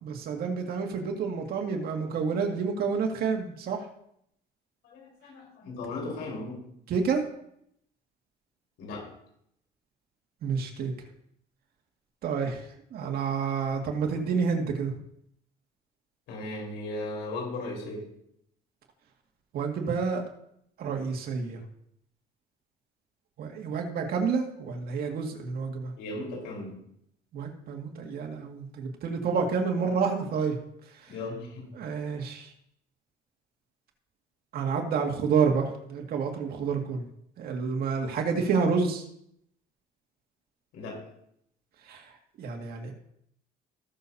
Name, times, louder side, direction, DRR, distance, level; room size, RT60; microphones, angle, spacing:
voice 1, 0.0-3.9 6.9-7.3 10.4-10.9 12.2-15.0 19.5-20.2 20.8-21.6 23.4-25.9 27.3-30.6 30.8-31.1 31.7-32.5 34.5-37.1 37.4-39.1 41.8-42.9, right 5 dB, 65° right, 2 dB, 2.1 m, -29 dB
voice 2, 4.8-6.6 8.8-9.1 16.3-18.0 26.0-26.8 31.1-31.7 40.7-41.0, left 2 dB, 85° left, -2 dB, 4.7 m, -36 dB
18.5 x 6.9 x 2.8 m, 0.73 s
cardioid pair, 110°, 17 cm